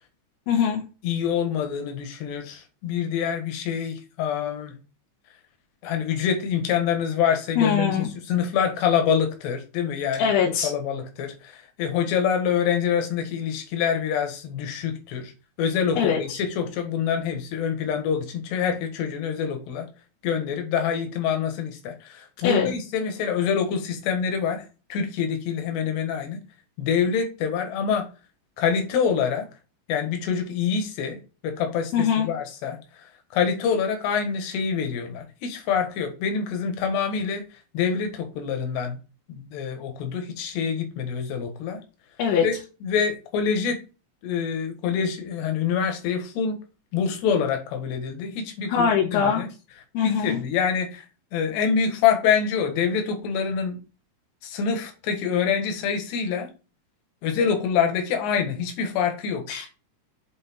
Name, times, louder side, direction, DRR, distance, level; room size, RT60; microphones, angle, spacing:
voice 1, 0.5-0.8 7.6-8.1 10.2-10.7 16.0-16.4 22.4-22.7 31.9-32.3 42.2-42.5 48.7-49.4 49.9-50.4 59.5-59.7, left 7 dB, 90° left, 4.1 m, -22 dB
voice 2, 1.0-4.7 5.8-10.3 10.6-15.3 15.6-19.9 20.2-24.7 24.9-26.4 26.8-28.1 28.6-29.5 29.9-32.8 33.3-37.4 37.7-39.0 39.3-41.8 42.4-42.5 42.8-43.8 44.2-46.6 46.9-49.5 50.0-51.0 51.3-53.8 54.4-56.5 57.2-59.4, left 7 dB, 70° left, 3.6 m, -26 dB
8.3 x 4.6 x 4.5 m
omnidirectional pair, 5.2 m